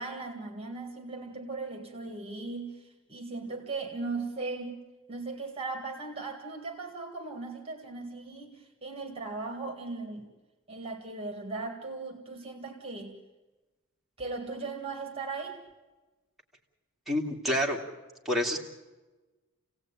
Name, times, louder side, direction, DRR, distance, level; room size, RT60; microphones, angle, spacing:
voice 1, 0.0-4.8 5.1-10.3 10.7-13.2 14.2-15.6, right 3 dB, 25° right, 5 dB, 1.9 m, -38 dB
voice 2, 17.1-17.8 18.2-18.6, equal, ahead, -3 dB, 2.6 m, -28 dB
28.5 x 17.5 x 8.9 m, 1.2 s
head